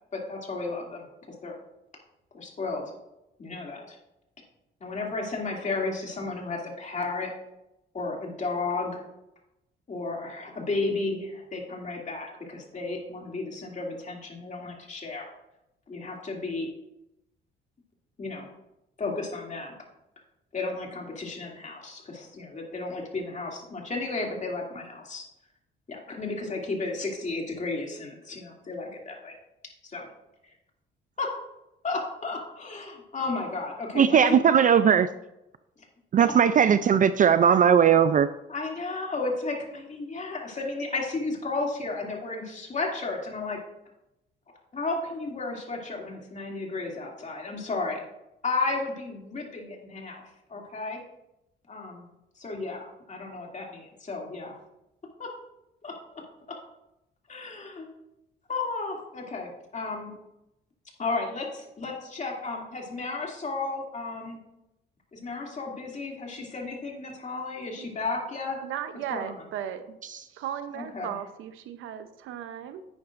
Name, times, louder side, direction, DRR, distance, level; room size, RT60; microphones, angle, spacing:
voice 1, 0.1-1.0 1.4-1.5 2.3-2.8 3.4-4.0 4.8-7.3 7.9-9.0 9.9-15.3 15.9-16.7 18.2-18.5 19.0-19.7 20.5-25.2 25.9-29.3 29.8-30.0 31.2-31.3 31.8-34.4 38.5-43.6 44.7-48.0 48.4-50.2 50.5-51.0 51.7-52.1 52.4-54.5 55.2-55.3 55.8-55.9 57.3-57.9 58.5-60.1 61.0-64.4 65.1-68.6 69.1-69.3 70.7-71.1, left 3 dB, 35° left, 0 dB, 2.5 m, -33 dB
voice 2, 34.0-35.1 36.1-38.3, right 8 dB, 40° right, 13 dB, 0.4 m, -19 dB
voice 3, 68.6-70.0 70.3-72.9, right 10 dB, 90° right, 10 dB, 0.7 m, -36 dB
10.5 x 8.7 x 2.5 m, 0.88 s
cardioid pair, 90°, 20 cm